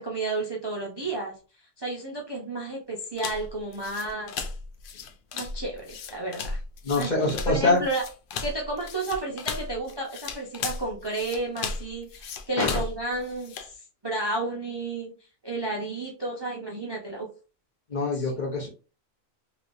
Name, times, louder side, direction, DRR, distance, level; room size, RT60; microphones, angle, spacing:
voice 1, 0.0-1.3 1.8-4.3 5.3-6.6 7.0-7.1 7.5-8.0 8.4-15.1 15.4-17.3 18.1-18.3, right 2 dB, 35° right, -2 dB, 0.4 m, -32 dB
sound 1, 3.2-13.7, left 4 dB, 80° left, 0.4 m, -35 dB
voice 2, 6.8-7.8 12.6-12.8 17.9-18.7, left 2 dB, 40° left, -2 dB, 0.9 m, -24 dB
3.2 x 2.8 x 2.6 m, 0.35 s
omnidirectional pair, 1.4 m